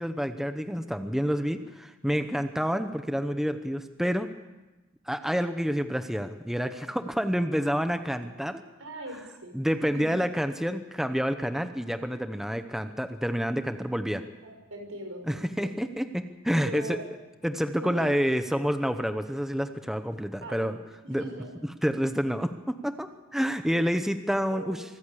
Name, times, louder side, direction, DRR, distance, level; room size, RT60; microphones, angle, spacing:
voice 1, 0.0-4.3 5.1-8.6 9.5-14.2 15.3-17.0 17.4-20.8 21.1-21.3 21.6-24.8, equal, ahead, 8 dB, 0.8 m, -28 dB
voice 2, 8.8-9.6 9.9-10.1 14.4-15.7 16.6-17.0 17.8-18.2 20.4-20.8 21.0-21.5 24.5-24.8, right 1 dB, 80° right, 4 dB, 5.4 m, -40 dB
24.5 x 14.5 x 8.4 m, 1.1 s
head